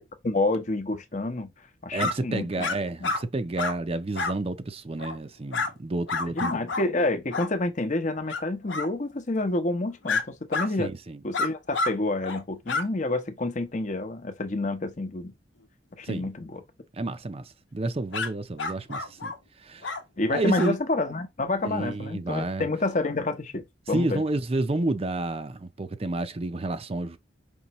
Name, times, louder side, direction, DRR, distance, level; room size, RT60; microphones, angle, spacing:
voice 1, 0.2-1.5 1.8-2.7 3.0-3.1 6.3-10.9 11.2-15.3 16.0-16.6 20.2-24.2, left 2 dB, 40° left, 0.8 m, -28 dB
voice 2, 1.9-6.6 10.8-11.2 16.0-16.3 16.9-19.9 20.3-20.8 21.6-22.7 23.9-27.2, right 2 dB, 30° right, 0.5 m, -30 dB
sound 1, 2.0-2.1 2.6-2.8 3.0-3.2 3.6-3.8 4.1-4.4 5.0-5.2 5.5-5.7 6.1-6.9 7.3-7.5 8.3-8.4 8.7-8.9 10.1-10.2 10.5-10.7 11.3-11.9 12.2-12.4 12.7-12.9 18.1-18.3 18.6-19.4 19.8-20.0 20.6-20.7, left 3 dB, 85° left, 1.0 m, -29 dB
5.4 x 3.3 x 3.0 m
head